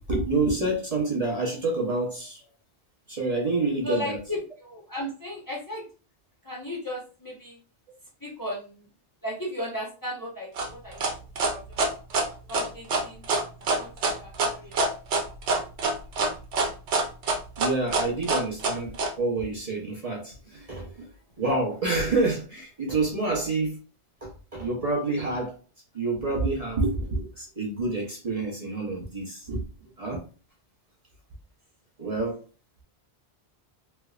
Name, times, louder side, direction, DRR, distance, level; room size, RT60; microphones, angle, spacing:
voice 1, 0.0-2.4 3.1-4.2 17.6-21.1 21.4-23.8 24.2-25.6 25.9-29.7 30.0-30.2 32.0-32.4, right 3 dB, 35° right, -2 dB, 0.8 m, -28 dB
voice 2, 3.8-5.9 6.4-7.6 8.2-8.9 9.2-11.0 11.5-12.0 12.5-13.3 13.7-14.7, left 1 dB, 20° left, -3 dB, 0.9 m, -35 dB
sound 1, 10.6-19.1, right 3 dB, 85° right, 1.0 m, -25 dB
3.3 x 3.1 x 2.3 m, 0.34 s
omnidirectional pair, 1.1 m